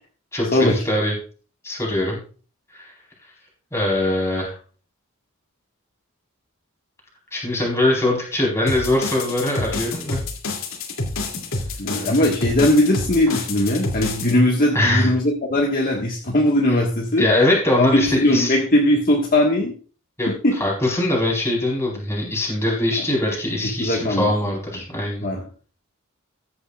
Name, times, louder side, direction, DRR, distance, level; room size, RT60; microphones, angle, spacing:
voice 1, 0.3-1.1 1.6-2.2 2.7-2.9 3.7-4.5 7.3-10.2 11.9-12.2 14.7-15.1 17.2-18.5 20.2-20.3 20.6-25.3, left 1 dB, 10° left, -3 dB, 4.4 m, -22 dB
sound 1, 8.7-14.3, left 2 dB, 65° left, 2.8 m, -28 dB
voice 2, 11.8-17.2 17.8-19.7 20.4-20.5 23.8-24.3 25.2-25.4, left 1 dB, 40° left, -2 dB, 1.7 m, -19 dB
14.5 x 9.7 x 2.5 m, 0.39 s
head